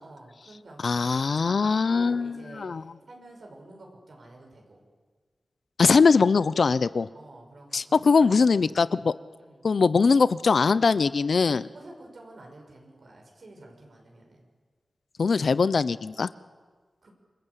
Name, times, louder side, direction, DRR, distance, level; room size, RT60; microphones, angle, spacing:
voice 1, 0.0-4.8 7.1-7.8 8.1-8.7 9.4-9.7 11.6-14.5 17.0-17.1, right 2 dB, 70° right, 1 dB, 6.4 m, -48 dB
voice 2, 0.8-2.8 5.8-7.1 7.7-9.1 9.6-11.6 15.2-16.3, left 4 dB, 70° left, 16 dB, 0.7 m, -21 dB
27.5 x 23.0 x 8.4 m, 1.5 s
wide cardioid pair, 80°, 0 cm